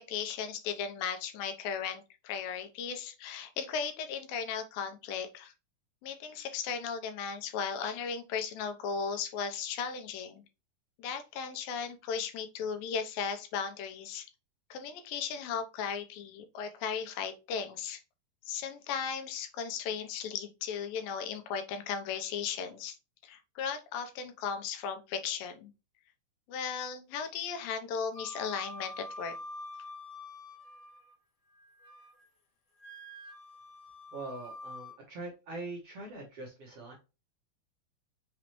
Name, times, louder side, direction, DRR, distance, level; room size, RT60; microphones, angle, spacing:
voice 1, 0.0-5.5 6.0-10.4 11.0-14.3 14.7-18.0 18.5-23.0 23.2-25.7 26.5-29.4, left 6 dB, 85° left, 2.4 m, -36 dB
Wind instrument woodwind instrument, 28.1-31.1 31.5-32.3 32.8-35.0, left 1 dB, 70° left, 1.5 m, -46 dB
voice 2, 34.1-36.9, right 2 dB, 60° right, 1.6 m, -42 dB
6.0 x 3.0 x 2.9 m
omnidirectional pair, 4.2 m